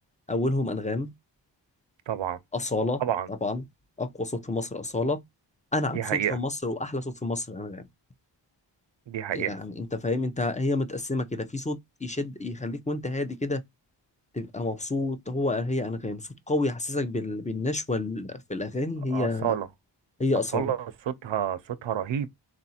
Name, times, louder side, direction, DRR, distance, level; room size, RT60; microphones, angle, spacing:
voice 1, 0.3-1.1 2.5-3.0 3.3-3.6 4.0-5.2 5.7-7.8 9.3-13.6 14.3-19.6 20.2-20.7, left 2 dB, 15° left, 0.7 m, -29 dB
voice 2, 2.1-2.4 3.0-3.3 5.9-6.4 9.1-9.6 19.1-19.7 20.5-20.8 21.1-22.3, right 9 dB, 80° right, 0.7 m, -28 dB
3.8 x 2.5 x 4.2 m
wide cardioid pair, 85°, 44 cm